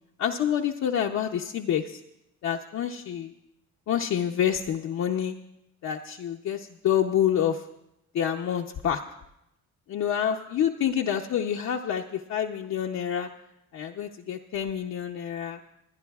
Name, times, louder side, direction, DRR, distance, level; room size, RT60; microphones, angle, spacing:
voice 1, 0.2-2.0 2.4-3.3 3.9-5.3 5.8-7.6 8.1-9.0 9.9-13.3 13.7-15.6, left 9 dB, 65° left, 0 dB, 0.7 m, -27 dB
28.0 x 10.0 x 2.4 m, 0.84 s
cardioid pair, 90°, 30 cm